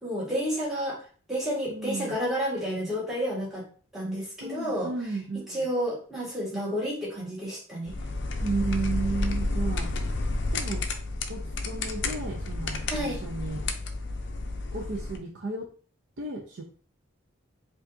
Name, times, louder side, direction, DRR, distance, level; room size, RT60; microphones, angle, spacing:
voice 1, 0.0-3.6 3.9-4.9 5.5-7.9 12.9-13.2, equal, ahead, -9 dB, 1.5 m, -30 dB
voice 2, 1.7-2.2 4.4-5.7 8.4-9.9 10.5-10.8 11.3-13.6 14.7-15.7 16.2-16.6, right 3 dB, 65° right, 0 dB, 0.6 m, -33 dB
sound 1, 7.9-15.2, left 2 dB, 60° left, 0.4 m, -31 dB
4.8 x 2.5 x 2.6 m, 0.40 s
head